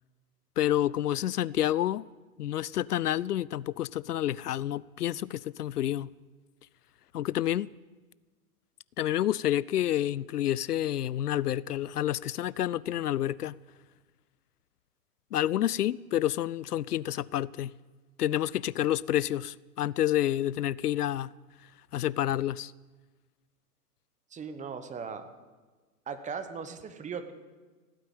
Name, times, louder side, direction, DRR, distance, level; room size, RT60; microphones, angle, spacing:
voice 1, 0.6-2.0 2.4-6.1 7.1-7.7 9.0-13.6 15.3-17.7 18.2-21.3 21.9-22.7, left 12 dB, 80° left, 0.5 m, -29 dB
voice 2, 24.3-25.3 26.1-27.3, right 6 dB, 15° right, 1.2 m, -38 dB
16.5 x 9.2 x 9.2 m
figure-of-eight pair, 105°, 46 cm